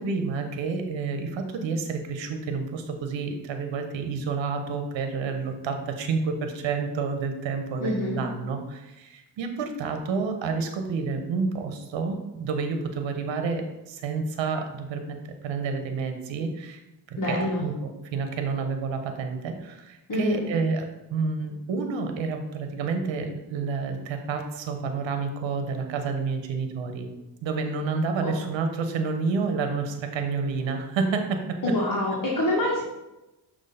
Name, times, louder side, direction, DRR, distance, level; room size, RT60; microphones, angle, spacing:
voice 1, 0.0-15.2 15.4-16.8 17.1-27.1 27.4-31.4, right 4 dB, 65° right, 6 dB, 1.1 m, -29 dB
voice 2, 7.8-8.2 17.2-17.6 20.1-20.4 28.2-28.3 31.6-32.8, left 1 dB, 40° left, -5 dB, 1.6 m, -26 dB
6.4 x 3.1 x 5.6 m, 0.98 s
supercardioid pair, 75°, 48 cm